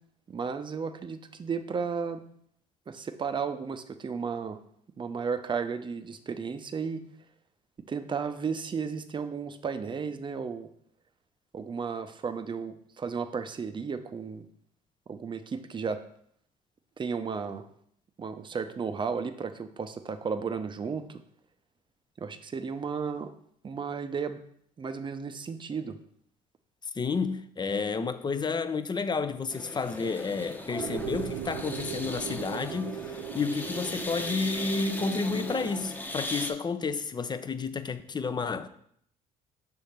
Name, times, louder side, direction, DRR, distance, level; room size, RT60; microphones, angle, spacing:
voice 1, 0.3-2.2 2.9-4.6 5.0-7.0 7.9-10.7 11.5-14.5 15.1-16.0 17.0-17.7 18.2-21.2 22.2-23.3 23.6-24.4 24.8-26.0, right 5 dB, 30° right, 0.7 m, -34 dB
voice 2, 26.9-38.7, left 4 dB, 25° left, 0.6 m, -31 dB
sound 1, 29.5-36.5, left 1 dB, 10° left, 1.0 m, -38 dB
sound 2, 30.8-35.8, right 10 dB, 70° right, 0.5 m, -38 dB
6.1 x 3.5 x 5.8 m
hypercardioid pair, 70°, 17 cm